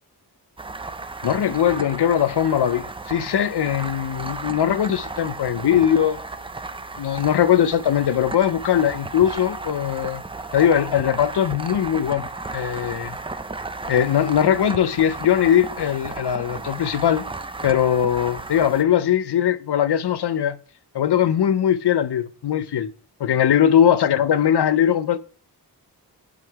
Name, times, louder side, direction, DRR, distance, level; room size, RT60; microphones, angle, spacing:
sound 1, 0.6-18.8, right 3 dB, 15° right, 0.4 m, -34 dB
voice 1, 1.2-6.2 7.0-10.2 10.5-12.3 12.5-13.2 13.9-17.2 17.6-20.6 20.9-22.9 23.2-25.2, left 9 dB, 75° left, 0.6 m, -20 dB
9.6 x 3.8 x 4.5 m
wide cardioid pair, 115°, 41 cm